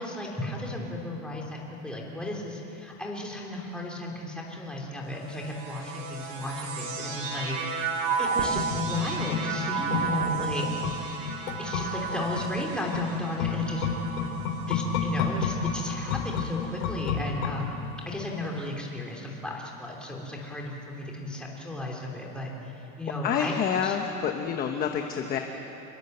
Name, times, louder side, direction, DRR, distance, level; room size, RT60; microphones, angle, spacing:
voice 1, 0.0-7.8 8.2-10.7 11.6-13.9 14.7-24.0, left 2 dB, ahead, -2 dB, 3.2 m, -34 dB
sound 1, 5.2-16.7 17.4-18.2, right 5 dB, 55° right, 5.7 m, -33 dB
sound 2, 8.5-18.1 18.4-18.5, left 6 dB, 75° left, 3.9 m, -32 dB
voice 2, 23.2-25.4, left 8 dB, 20° left, 4 dB, 1.0 m, -28 dB
28.5 x 22.0 x 8.0 m, 3.0 s
supercardioid pair, 175°, 43 cm